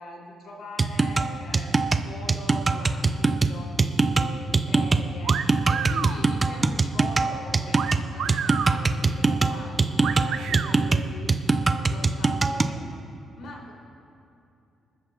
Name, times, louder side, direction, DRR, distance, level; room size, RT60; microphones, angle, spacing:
voice 1, 0.0-5.4 5.7-11.3 11.8-13.0 13.3-13.7, left 2 dB, 60° left, -1 dB, 3.4 m, -43 dB
sound 1, 0.8-12.8, right 3 dB, 20° right, 0.5 m, -23 dB
sound 2, 5.2-6.2 7.7-8.8 10.0-10.7, right 8 dB, 65° right, 0.6 m, -29 dB
29.0 x 13.5 x 2.5 m, 2.8 s
cardioid pair, 160°, 0 cm